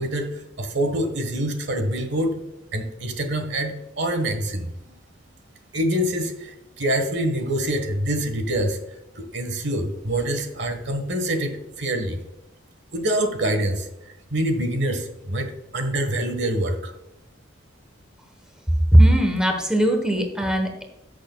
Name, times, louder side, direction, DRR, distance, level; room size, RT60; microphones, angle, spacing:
voice 1, 0.0-2.4 2.7-4.7 5.7-8.8 9.1-12.2 12.9-13.9 14.3-16.9, right 1 dB, 60° right, 6 dB, 1.3 m, -25 dB
voice 2, 18.9-20.8, right 1 dB, 5° right, 4 dB, 1.0 m, -18 dB
13.5 x 6.6 x 2.2 m, 0.91 s
head